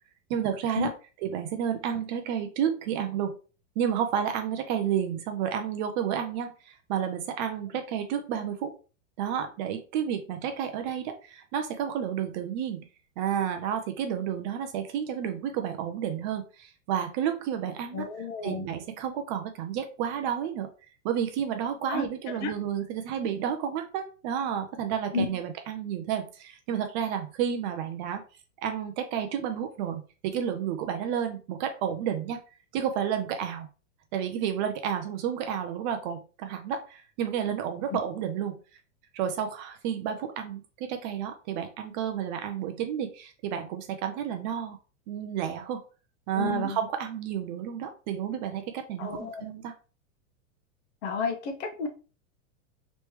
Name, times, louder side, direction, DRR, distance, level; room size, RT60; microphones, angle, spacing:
voice 1, 0.3-0.9 1.2-3.4 3.8-8.7 9.2-12.9 13.2-18.1 18.4-20.7 21.0-28.2 28.6-32.4 32.7-33.7 34.1-38.6 39.1-44.8 45.1-45.8 46.3-49.7, right 9 dB, 35° right, 6 dB, 0.4 m, -31 dB
voice 2, 17.9-18.6 21.9-22.0 22.4-22.5 25.1-25.2 46.3-46.8 49.0-49.5 51.0-51.9, left 5 dB, 55° left, 5 dB, 1.0 m, -31 dB
3.2 x 3.1 x 3.0 m, 0.35 s
supercardioid pair, 145°, 41 cm